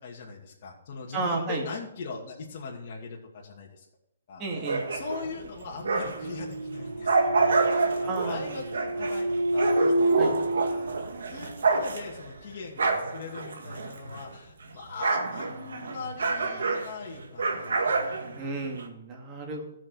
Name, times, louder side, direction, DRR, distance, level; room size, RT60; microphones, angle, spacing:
voice 1, 0.0-3.9 4.3-4.6 4.9-10.2 10.7-10.8 11.3-18.0, left 4 dB, 45° left, -3 dB, 2.4 m, -40 dB
voice 2, 1.1-1.6 4.4-4.8 8.1-8.5 10.2-10.4 18.4-19.7, right 3 dB, 20° right, -1 dB, 2.3 m, -32 dB
sound 1, 4.5-6.4 6.7-14.3 14.6-18.9, right 4 dB, 90° right, 1.8 m, -29 dB
sound 2, 5.2-11.7, right 1 dB, 70° right, 1.3 m, -28 dB
14.0 x 6.3 x 4.8 m, 0.83 s
hypercardioid pair, 160°, 0 cm